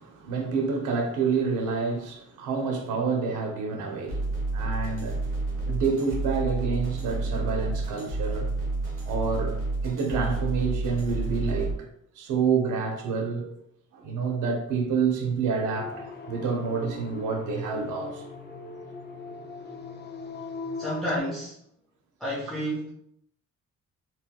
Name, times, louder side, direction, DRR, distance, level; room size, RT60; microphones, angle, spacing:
voice 1, 0.0-4.3 4.5-5.2 5.7-8.5 9.0-11.9 12.1-13.5 13.9-18.2, right 5 dB, 80° right, 0.7 m, -28 dB
sound 1, 4.1-11.7, right 2 dB, 45° right, 1.2 m, -30 dB
sound 2, 15.7-21.2, left 4 dB, 35° left, 0.5 m, -39 dB
voice 2, 20.8-21.5 22.2-22.9, equal, ahead, 0.9 m, -30 dB
3.3 x 2.9 x 2.2 m
cardioid pair, 90°, 30 cm